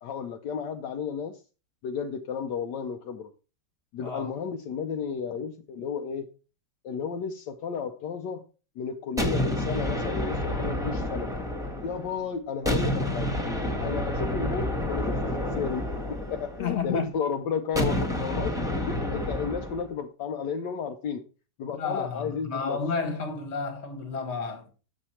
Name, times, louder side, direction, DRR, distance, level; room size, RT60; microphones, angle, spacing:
voice 1, 0.0-1.4 1.8-3.3 3.9-6.3 6.8-8.4 8.8-11.3 11.8-13.3 13.8-18.5 18.8-21.2 21.6-22.8, left 6 dB, 75° left, 1.3 m, -33 dB
sound 1, 9.2-12.2 12.6-16.9 17.7-19.9, left 1 dB, ahead, 1.1 m, -29 dB
voice 2, 16.6-17.0 21.7-24.7, left 5 dB, 40° left, 1.6 m, -31 dB
8.0 x 6.4 x 4.3 m
omnidirectional pair, 2.0 m